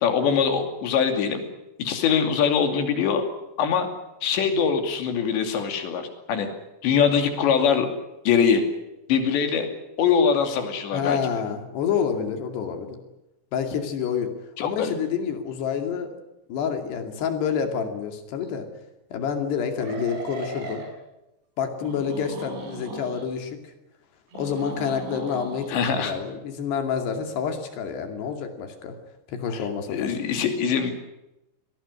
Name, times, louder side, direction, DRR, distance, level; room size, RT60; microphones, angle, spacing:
voice 1, 0.0-1.4 1.8-3.2 3.6-3.9 4.2-6.5 6.8-7.9 8.2-8.6 9.1-9.7 10.0-11.2 14.6-14.9 25.7-26.1 29.5-29.6 29.9-30.9, left 7 dB, 90° left, 6 dB, 4.9 m, -22 dB
voice 2, 10.9-13.0 13.5-14.3 14.6-16.2 16.5-18.7 19.1-20.8 21.6-23.6 24.3-29.0 29.3-30.1, left 7 dB, 75° left, 6 dB, 4.5 m, -28 dB
sound 1, 18.4-18.5 19.7-20.9 21.8-23.3 24.3-25.7, right 3 dB, 85° right, 7.8 m, -37 dB
23.0 x 18.5 x 9.8 m, 0.94 s
omnidirectional pair, 4.9 m